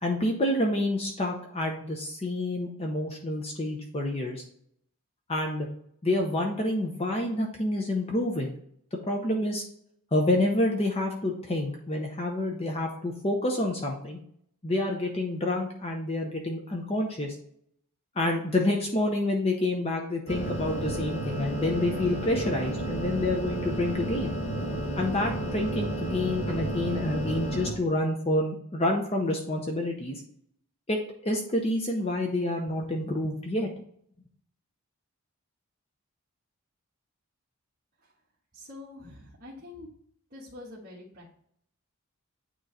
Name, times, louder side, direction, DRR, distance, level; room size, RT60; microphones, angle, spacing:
voice 1, 0.0-4.4 5.3-5.7 6.0-8.5 9.1-9.6 10.1-14.2 14.6-17.4 18.2-24.3 25.0-30.2 30.9-33.7, left 1 dB, 25° left, 1 dB, 0.7 m, -28 dB
sound 1, 20.3-27.7, right 1 dB, 60° left, 1.8 m, -32 dB
voice 2, 38.5-39.9 40.3-41.4, left 2 dB, 40° right, -8 dB, 1.4 m, -45 dB
8.9 x 3.1 x 3.9 m, 0.66 s
head